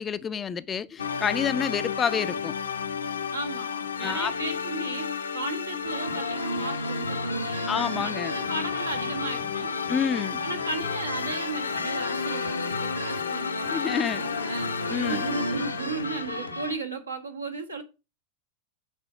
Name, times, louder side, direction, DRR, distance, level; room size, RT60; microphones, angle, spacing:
voice 1, 0.0-2.5 4.0-4.3 7.7-8.3 9.9-10.4 13.7-14.2 14.9-15.3, left 7 dB, 20° left, 0.4 m, -28 dB
sound 1, 1.0-16.8, left 5 dB, 70° left, 0.7 m, -32 dB
voice 2, 3.3-9.7 10.4-14.7 15.0-17.8, right 3 dB, 80° right, 1.6 m, -35 dB
sound 2, 5.8-16.7, left 1 dB, 90° left, 1.3 m, -36 dB
6.7 x 4.1 x 5.7 m
figure-of-eight pair, 90°, 0 cm